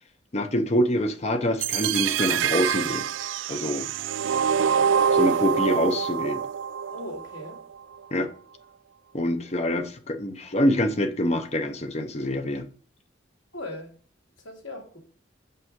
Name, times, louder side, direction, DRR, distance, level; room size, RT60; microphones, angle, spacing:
voice 1, 0.3-3.1 3.5-3.9 5.1-6.4 8.1-8.3 9.1-12.7, left 1 dB, 35° left, 0.8 m, -25 dB
sound 1, 1.6-7.6, right 7 dB, 75° right, 0.3 m, -25 dB
voice 2, 6.9-7.6 13.5-13.9 14.4-15.0, left 1 dB, 75° left, 2.8 m, -38 dB
7.6 x 5.6 x 3.7 m
head